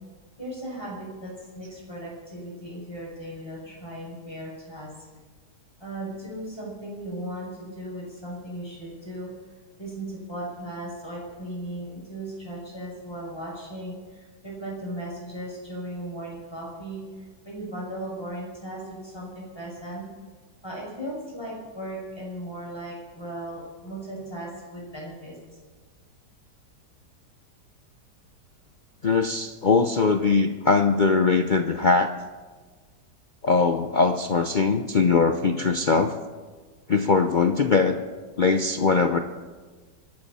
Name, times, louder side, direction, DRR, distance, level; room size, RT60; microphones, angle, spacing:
voice 1, 0.4-4.9 5.8-9.3 9.8-17.0 17.4-20.0 20.6-25.4, right 1 dB, 15° left, -5 dB, 6.3 m, -37 dB
voice 2, 29.0-32.1 33.4-36.2 36.9-38.0 38.4-39.2, left 4 dB, 75° left, 7 dB, 0.4 m, -21 dB
27.0 x 12.5 x 4.2 m, 1.4 s
omnidirectional pair, 1.9 m